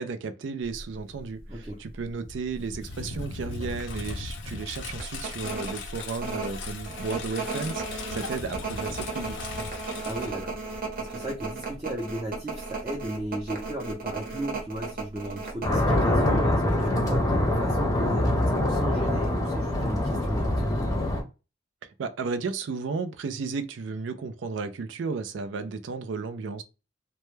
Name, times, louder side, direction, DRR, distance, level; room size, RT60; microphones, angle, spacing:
voice 1, 0.0-9.5 21.8-26.6, right 4 dB, 80° right, 0.4 m, -34 dB
sound 1, 0.7-1.0 1.5-1.6 1.9-2.8 3.2-3.3 3.7-3.9 4.3-4.4 5.0-15.8, right 3 dB, 55° right, 0.8 m, -34 dB
voice 2, 1.5-1.8 9.7-20.8, right 1 dB, 20° right, 0.6 m, -36 dB
Engine, 2.2-11.0, left 4 dB, 80° left, 0.5 m, -38 dB
sound 2, 15.6-21.2, left 1 dB, 20° left, 0.6 m, -24 dB
2.2 x 2.1 x 3.0 m
head